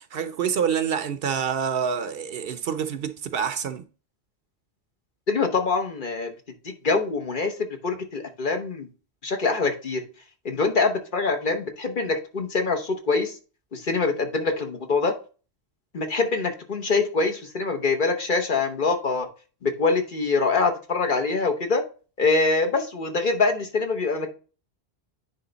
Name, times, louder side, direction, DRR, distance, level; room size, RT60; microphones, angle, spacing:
voice 1, 0.0-3.8, right 7 dB, 65° right, 0.8 m, -27 dB
voice 2, 5.3-6.3 6.6-7.6 7.8-8.9 9.2-10.0 10.4-13.4 13.7-15.1 15.9-19.3 19.6-21.8 22.2-24.3, left 4 dB, 55° left, 1.2 m, -24 dB
9.8 x 3.3 x 3.9 m
omnidirectional pair, 1.1 m